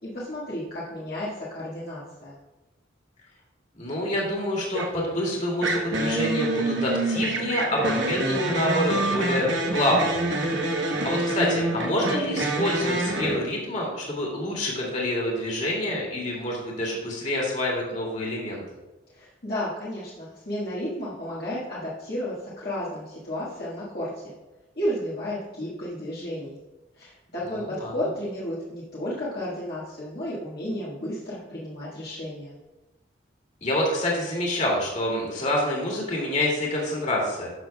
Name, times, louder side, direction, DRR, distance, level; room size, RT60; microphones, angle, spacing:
voice 1, 0.0-2.3 19.1-24.3 24.8-26.5 27.0-32.5, equal, 55° left, -8 dB, 1.6 m, -32 dB
voice 2, 3.8-10.3 10.6-10.7 11.0-18.6 27.5-27.9 33.6-37.5, left 1 dB, 40° left, -2 dB, 2.2 m, -27 dB
sound 1, 4.7-5.0 5.6-13.4, right 2 dB, 70° right, 1.1 m, -26 dB
12.5 x 6.3 x 2.3 m, 1.1 s
head